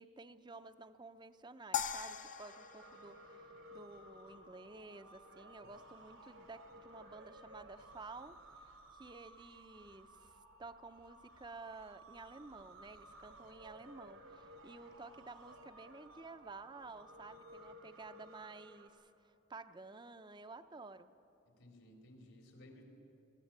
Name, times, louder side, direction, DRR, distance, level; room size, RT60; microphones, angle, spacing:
voice 1, 0.0-21.1, right 3 dB, 20° right, 10 dB, 0.6 m, -53 dB
sound 1, 1.7-4.1, left 8 dB, 40° left, 0.6 m, -41 dB
sound 2, 2.4-18.9, right 1 dB, 85° right, 2.4 m, -57 dB
voice 2, 21.5-22.8, left 1 dB, 80° left, 1 dB, 3.8 m, -58 dB
20.5 x 16.0 x 8.7 m, 2.8 s
head